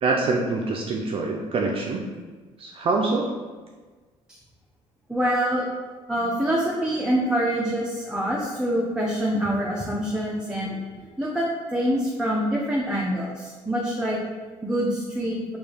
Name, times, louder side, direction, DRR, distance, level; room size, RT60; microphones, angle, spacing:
voice 1, 0.0-2.0 2.6-3.3, right 3 dB, 45° right, 0 dB, 0.4 m, -25 dB
voice 2, 5.1-5.7 6.1-11.5 11.7-14.2 14.6-15.4, equal, 5° right, -5 dB, 0.7 m, -25 dB
4.4 x 2.4 x 3.4 m, 1.4 s
cardioid pair, 90°, 12 cm